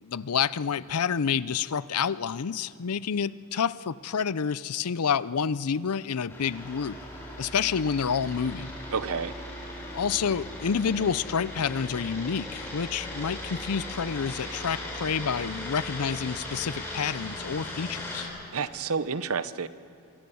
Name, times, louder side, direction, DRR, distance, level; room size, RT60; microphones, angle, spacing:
voice 1, 0.0-7.0 7.4-8.7 9.9-18.3, left 6 dB, 90° left, 18 dB, 0.6 m, -28 dB
sound 1, 6.3-18.2, left 1 dB, 10° left, 4.7 m, -38 dB
voice 2, 8.9-9.3 18.5-19.7, right 5 dB, 75° right, 14 dB, 0.8 m, -29 dB
26.0 x 22.5 x 7.0 m, 2.5 s
head